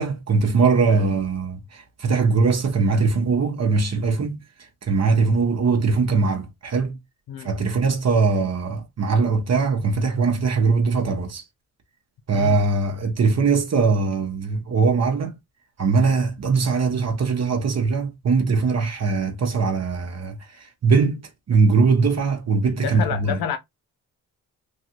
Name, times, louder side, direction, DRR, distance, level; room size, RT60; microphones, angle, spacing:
voice 1, 0.0-1.6 2.0-4.4 4.9-6.9 7.4-11.4 12.3-15.3 15.8-20.3 20.8-21.2 21.5-23.4, right 4 dB, 45° right, 0.9 m, -21 dB
voice 2, 22.8-23.6, left 7 dB, 80° left, 0.7 m, -29 dB
3.2 x 2.4 x 2.8 m
cardioid pair, 65°, 36 cm